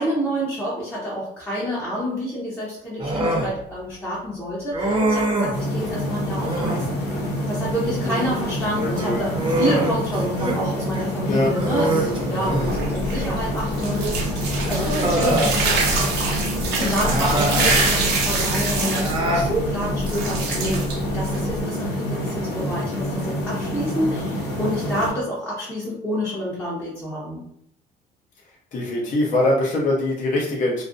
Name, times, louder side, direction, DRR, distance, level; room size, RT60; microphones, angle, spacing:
voice 1, 0.0-7.0 7.5-14.4 14.7-15.8 16.8-20.8 21.1-27.4, equal, 10° left, -7 dB, 0.6 m, -28 dB
Human voice, 3.0-3.5 4.7-5.6 6.3-6.9 8.8-10.6 10.9-11.1 11.5-12.8 14.0-14.1 14.7-15.6 17.0-17.8 18.8-19.5, right 1 dB, 30° right, 0.6 m, -24 dB
sound 1, 5.5-25.1, equal, 80° left, 0.9 m, -27 dB
voice 2, 8.8-9.2 11.3-11.5 28.7-30.8, left 1 dB, 50° left, -3 dB, 0.6 m, -23 dB
sound 2, 12.6-21.6, right 2 dB, 85° right, 0.6 m, -25 dB
2.4 x 2.0 x 2.5 m, 0.70 s
cardioid pair, 110°, 17 cm